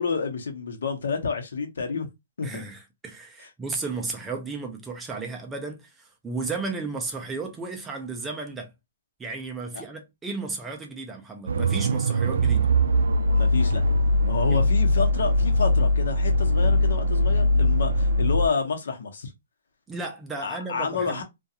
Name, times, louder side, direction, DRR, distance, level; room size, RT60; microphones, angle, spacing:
voice 1, 0.0-2.1 2.4-2.6 9.7-9.8 13.3-13.8 14.3-19.3 20.4-21.2, left 5 dB, 75° left, 0.8 m, -29 dB
voice 2, 2.4-8.7 9.2-12.7 14.5-14.6 19.9-21.2, right 3 dB, 10° right, 0.3 m, -34 dB
sound 1, 11.5-18.5, left 1 dB, 90° right, 0.3 m, -21 dB
2.4 x 2.2 x 2.7 m
hypercardioid pair, 175°, 0 cm